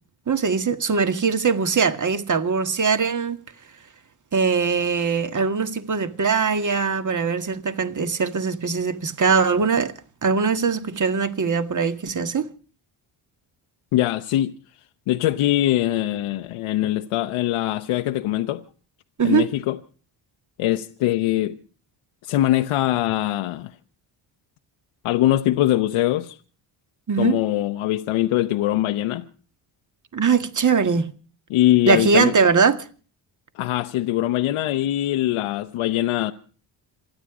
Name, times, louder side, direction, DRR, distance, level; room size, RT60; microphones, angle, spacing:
voice 1, 0.3-3.4 4.3-9.9 10.2-12.5 19.2-19.5 27.1-27.4 30.1-31.1 31.9-32.9, right 5 dB, 35° right, 1.9 m, -21 dB
voice 2, 13.9-14.5 15.1-18.6 19.2-19.8 20.6-21.6 22.2-23.7 25.0-26.4 27.2-29.3 31.5-32.4 33.5-36.3, left 14 dB, 90° left, 1.0 m, -22 dB
27.5 x 10.0 x 4.9 m
cardioid pair, 75°, 49 cm